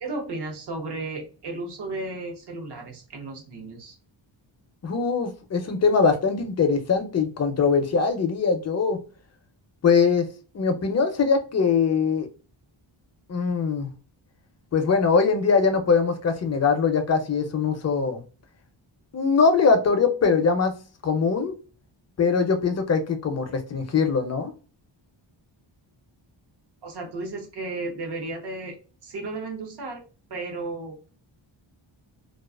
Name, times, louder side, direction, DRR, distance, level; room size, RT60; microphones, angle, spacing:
voice 1, 0.0-3.9 26.8-28.8 29.0-30.0 30.3-31.0, right 2 dB, 60° right, 0.9 m, -34 dB
voice 2, 4.8-9.0 9.8-10.3 10.5-12.3 13.3-13.9 14.7-18.2 19.1-20.8 21.0-21.5 22.2-24.5, left 5 dB, 35° left, 0.4 m, -22 dB
2.4 x 2.3 x 2.3 m
wide cardioid pair, 155°, 47 cm